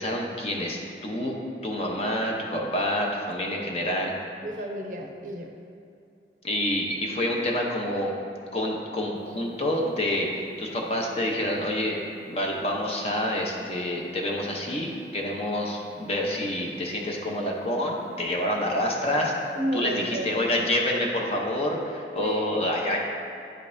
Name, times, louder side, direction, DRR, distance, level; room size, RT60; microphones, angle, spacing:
voice 1, 0.0-1.3 1.6-4.1 6.4-8.1 8.5-12.0 12.3-23.0, left 1 dB, 35° left, 0 dB, 0.7 m, -28 dB
voice 2, 4.4-5.5 19.6-20.4 22.2-22.8, right 1 dB, 45° right, 2 dB, 0.6 m, -32 dB
sound 1, 9.1-20.6, left 4 dB, ahead, 0.4 m, -51 dB
9.4 x 5.2 x 2.6 m, 2.5 s
head